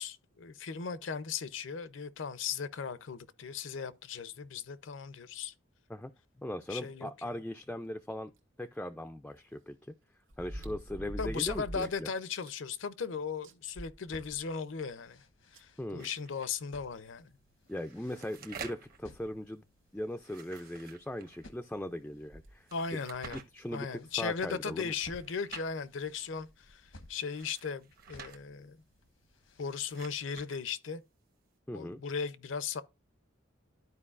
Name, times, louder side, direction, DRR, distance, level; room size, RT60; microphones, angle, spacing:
voice 1, 0.0-5.5 6.7-7.1 11.2-15.2 15.6-17.3 22.7-23.4 23.7-28.8 29.6-31.0 31.7-32.8, left 6 dB, 70° left, 0.6 m, -37 dB
voice 2, 6.4-8.3 8.6-9.9 10.4-12.1 15.8-16.1 17.7-19.6 19.9-23.0 23.5-24.9 31.7-32.0, left 1 dB, 5° left, 0.3 m, -39 dB
sound 1, 8.4-8.5 10.3-12.0 12.4-12.5 13.0-13.1 13.4-14.6 15.5-15.6 17.1-17.2 17.8-17.9 18.6-18.8 20.1-20.2 20.4-20.5 22.2-22.5 23.2-23.3, equal, 85° right, 1.3 m, -43 dB
sound 2, 14.0-30.3, left 1 dB, 85° left, 1.1 m, -59 dB
sound 3, 16.0-16.5 17.6-19.0 20.2-21.5 22.7-23.4 24.9-25.7 27.2-28.4 29.5-30.6, right 6 dB, 50° right, 1.1 m, -49 dB
12.5 x 4.5 x 2.4 m
head